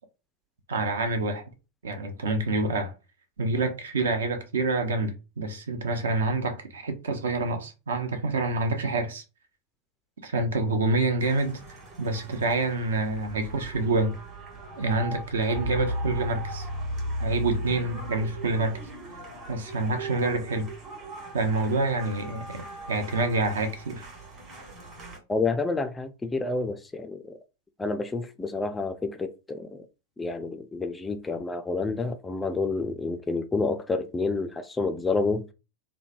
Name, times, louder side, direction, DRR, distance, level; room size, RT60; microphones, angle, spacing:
voice 1, 0.7-1.4 1.8-2.9 3.4-9.2 10.2-11.6 12.0-14.1 14.8-16.7 17.2-18.8 19.5-20.7 21.3-24.1, right 3 dB, 65° right, 0.6 m, -27 dB
sound 1, 11.2-25.2, equal, 30° right, 1.3 m, -36 dB
voice 2, 25.3-27.3 27.8-29.9 30.2-35.5, left 3 dB, 10° left, 0.3 m, -29 dB
3.1 x 2.1 x 2.6 m
figure-of-eight pair, 90°, 0 cm